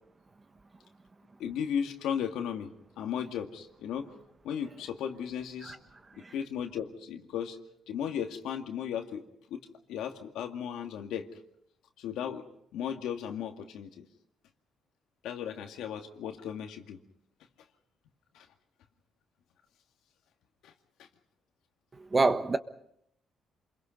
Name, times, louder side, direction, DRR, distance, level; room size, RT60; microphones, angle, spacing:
voice 1, 1.4-2.7 3.0-4.1 4.4-5.8 6.2-7.6 7.9-9.6 9.9-11.3 12.0-12.4 12.7-14.1 15.2-17.0 18.3-18.5 20.6-20.7 21.0-21.1, left 8 dB, 85° left, 2.2 m, -35 dB
voice 2, 21.9-22.6, right 3 dB, 30° right, 1.3 m, -27 dB
28.5 x 22.5 x 5.4 m
cardioid pair, 90°, 0 cm